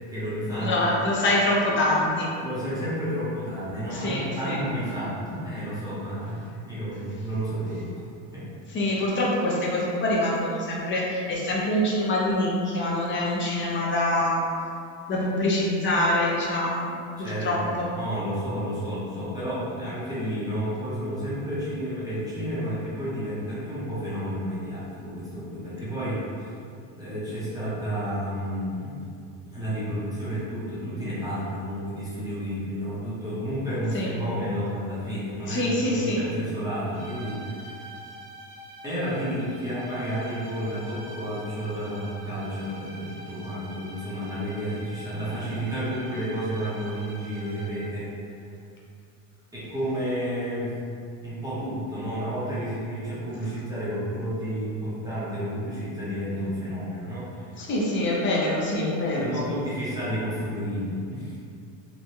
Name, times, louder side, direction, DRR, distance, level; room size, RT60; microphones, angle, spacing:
voice 1, 0.1-0.9 2.4-7.9 8.3-8.5 17.2-26.6 27.0-29.0 29.5-37.9 38.8-48.1 49.5-50.8 51.2-57.6 59.1-61.4, equal, 10° right, -12 dB, 0.7 m, -31 dB
voice 2, 0.6-2.3 3.9-4.6 8.7-14.5 15.1-16.9 17.2-18.0 33.9-34.2 35.5-36.3 57.6-59.6, left 1 dB, 30° left, -4 dB, 0.6 m, -25 dB
sound 1, 36.9-48.0, right 1 dB, 75° right, 0.9 m, -45 dB
3.0 x 2.3 x 2.7 m, 2.4 s
supercardioid pair, 120°, 41 cm